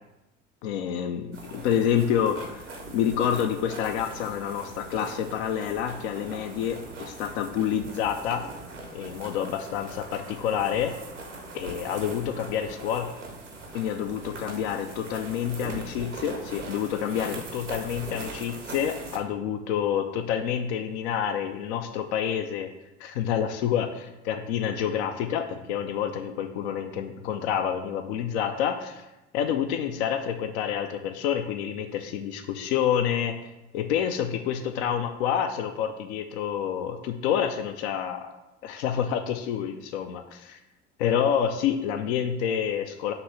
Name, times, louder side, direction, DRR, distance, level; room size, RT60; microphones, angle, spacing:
voice 1, 0.6-2.6 2.9-8.4 8.9-11.0 11.5-13.1 13.7-22.7 23.0-29.1 29.3-33.4 33.7-38.3 38.6-40.6 41.0-43.1, left 9 dB, 65° left, 7 dB, 0.6 m, -28 dB
sound 1, 1.3-19.2, right 2 dB, 90° right, 0.9 m, -41 dB
6.9 x 3.0 x 5.6 m, 0.96 s
figure-of-eight pair, 60°, 36 cm